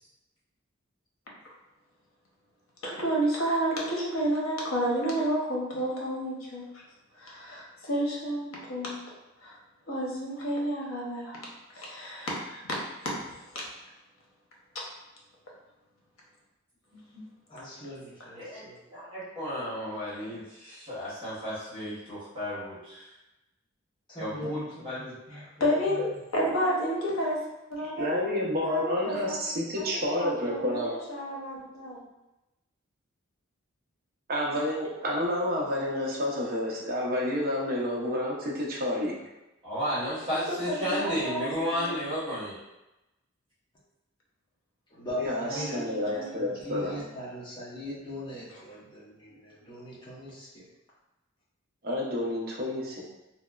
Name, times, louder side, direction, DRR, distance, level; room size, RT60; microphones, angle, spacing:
voice 1, 2.8-6.8 7.2-9.0 9.4-9.6 9.9-12.8 13.0-13.7 25.3-27.4 27.7-28.3 28.6-29.4 29.8-32.0 40.3-41.9 45.5-46.2 46.7-47.0, equal, 75° left, -3 dB, 0.7 m, -31 dB
voice 2, 16.9-17.2 18.3-18.6 18.9-23.1 24.2-25.1 39.6-42.5, equal, 25° right, -11 dB, 1.1 m, -33 dB
voice 3, 17.5-18.8 24.1-26.1 44.9-50.7, equal, 20° left, -7 dB, 0.7 m, -40 dB
voice 4, 28.0-30.9 34.3-39.1 45.2-46.9 51.8-53.0, left 1 dB, 45° right, -3 dB, 0.6 m, -29 dB
2.9 x 2.0 x 2.3 m, 0.97 s
head